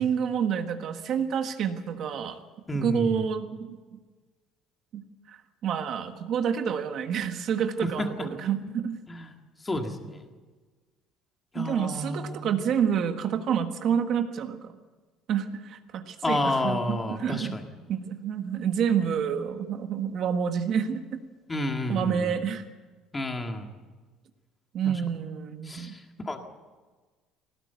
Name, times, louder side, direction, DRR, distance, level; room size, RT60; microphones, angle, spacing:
voice 1, 0.0-2.4 2.8-4.0 4.9-5.0 5.3-9.0 11.5-14.7 15.3-17.5 17.9-21.2 21.9-22.6 24.7-25.9, right 7 dB, 40° right, 6 dB, 1.5 m, -28 dB
voice 2, 2.7-3.3 8.0-8.1 9.1-9.3 9.6-10.3 11.5-12.5 16.2-17.7 21.5-22.4 23.1-23.7 24.9-25.0 25.7-26.4, left 1 dB, 10° left, 4 dB, 1.8 m, -30 dB
21.5 x 18.5 x 8.2 m, 1.3 s
cardioid pair, 175°, 0 cm